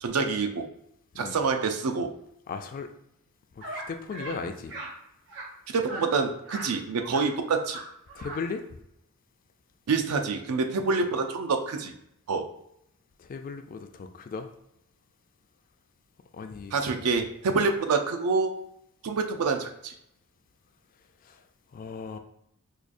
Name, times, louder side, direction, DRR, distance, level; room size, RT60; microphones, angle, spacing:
voice 1, 0.0-0.7 1.2-2.1 5.7-7.8 9.9-11.9 12.3-12.5 16.7-18.5 19.0-19.9, right 4 dB, 75° right, 5 dB, 0.5 m, -27 dB
voice 2, 2.5-2.9 3.5-4.8 8.1-8.6 13.2-14.5 16.3-17.1 21.2-21.4 21.7-22.2, left 4 dB, 40° left, 7 dB, 0.3 m, -37 dB
sound 1, 3.6-3.8 4.1-4.4 4.7-4.9 5.3-5.5 5.9-6.0 6.5-6.7 7.0-7.2 7.5-7.8 8.1-8.4, right 2 dB, 55° right, 0.9 m, -39 dB
4.8 x 2.3 x 2.5 m, 0.77 s
head